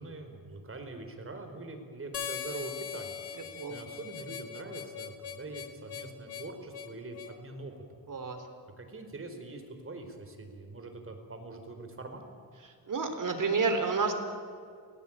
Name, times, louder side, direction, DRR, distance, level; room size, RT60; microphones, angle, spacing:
voice 1, 0.0-3.2 3.7-7.7 8.8-12.2, right 2 dB, 35° right, 5 dB, 4.8 m, -43 dB
Harmonica, 2.1-7.4, left 8 dB, 80° left, 2.1 m, -41 dB
voice 2, 8.1-8.4 12.9-14.1, right 4 dB, 55° right, 6 dB, 4.0 m, -29 dB
29.0 x 19.5 x 9.0 m, 2.2 s
cardioid pair, 100°, 39 cm